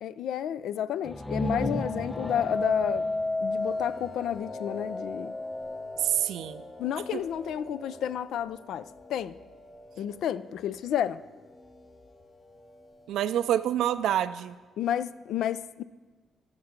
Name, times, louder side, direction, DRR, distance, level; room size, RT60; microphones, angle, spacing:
voice 1, 0.0-3.1 3.4-5.3 6.8-8.8 9.1-9.4 10.0-11.2 14.8-15.8, left 10 dB, 80° left, 0.4 m, -31 dB
sound 1, 1.0-4.8, left 1 dB, 10° left, 0.6 m, -35 dB
sound 2, 1.5-10.7 11.2-11.7, left 2 dB, 35° left, 1.2 m, -35 dB
voice 2, 6.0-6.6 7.1-7.2 13.1-14.6, right 11 dB, 85° right, 0.3 m, -27 dB
15.0 x 6.6 x 5.9 m
cardioid pair, 85°, 0 cm